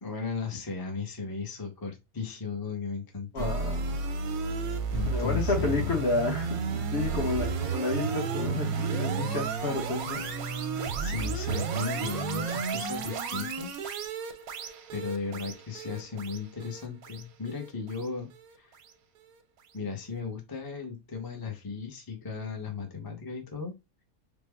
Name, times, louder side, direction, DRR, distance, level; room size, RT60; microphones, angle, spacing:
voice 1, 0.0-3.5 4.9-5.9 11.0-13.7 14.9-18.3 18.6-18.7 19.7-23.7, left 5 dB, 25° left, 0.5 m, -36 dB
voice 2, 3.3-3.8 5.0-10.3, left 3 dB, 50° left, 1.2 m, -30 dB
sound 1, 3.4-18.5, right 5 dB, 90° right, 1.1 m, -32 dB
3.4 x 2.1 x 3.3 m
omnidirectional pair, 1.5 m